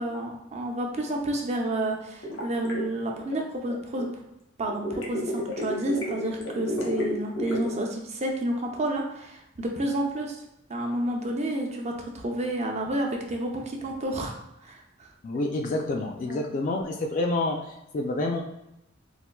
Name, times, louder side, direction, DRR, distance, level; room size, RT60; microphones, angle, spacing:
voice 1, 0.0-4.2 4.6-10.4 10.7-15.1 16.2-16.5, right 1 dB, 35° right, 1 dB, 0.5 m, -30 dB
sound 1, 2.2-4.0 4.7-7.8, equal, 90° left, 0.9 m, -32 dB
voice 2, 15.2-18.4, left 2 dB, 40° left, 1 dB, 0.3 m, -28 dB
4.3 x 2.5 x 2.2 m, 0.88 s
head